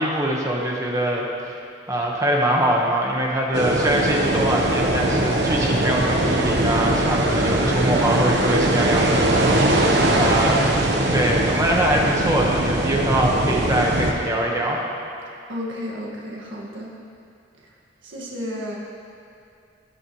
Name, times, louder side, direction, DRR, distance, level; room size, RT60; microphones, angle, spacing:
voice 1, 0.0-1.5 1.9-10.7 11.1-14.8, right 1 dB, 15° right, -2 dB, 1.2 m, -23 dB
sound 1, 3.5-14.1, right 1 dB, 65° right, 1.0 m, -21 dB
voice 2, 15.5-16.9 18.0-18.8, left 1 dB, 85° right, -3 dB, 1.7 m, -32 dB
18.0 x 7.8 x 3.1 m, 2.4 s
head